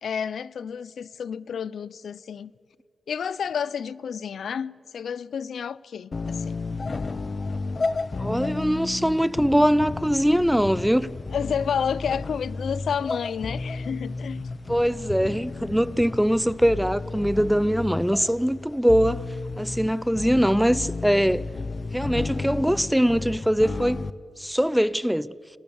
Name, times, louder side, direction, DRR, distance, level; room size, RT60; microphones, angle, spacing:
voice 1, 0.0-2.5 3.1-6.6 11.3-14.4, left 7 dB, 80° left, 0.5 m, -30 dB
sound 1, 6.1-24.1, left 3 dB, 45° left, 0.8 m, -32 dB
voice 2, 8.2-11.1 14.7-19.2 19.6-21.4 21.9-24.0 24.4-25.3, equal, 5° right, 0.5 m, -22 dB
29.0 x 19.0 x 7.1 m
cardioid pair, 75°, 0 cm